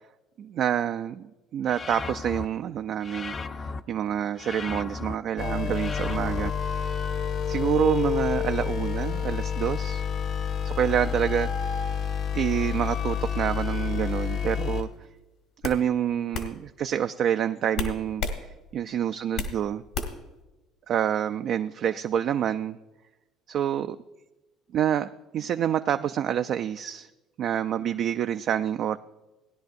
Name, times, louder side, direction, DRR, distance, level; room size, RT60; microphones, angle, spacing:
voice 1, 0.4-1.2 1.5-3.3 3.6-6.8 7.5-10.0 10.6-11.9 12.3-14.9 15.6-18.2 18.7-19.8 20.9-22.8 23.5-24.0 24.7-27.1 27.4-29.0, right 9 dB, 60° right, 9 dB, 0.3 m, -27 dB
sound 1, 1.7-2.5 3.0-3.8 4.4-5.1 5.7-6.5, left 4 dB, 35° left, 0.5 m, -36 dB
sound 2, 5.4-14.8, left 7 dB, 60° left, 0.9 m, -29 dB
sound 3, 14.8-15.0 15.6-15.8 16.3-16.5 17.7-18.4 18.8-19.6 19.9-20.3, left 5 dB, 75° left, 1.5 m, -31 dB
17.0 x 10.5 x 2.6 m, 1.1 s
supercardioid pair, 80°, 0 cm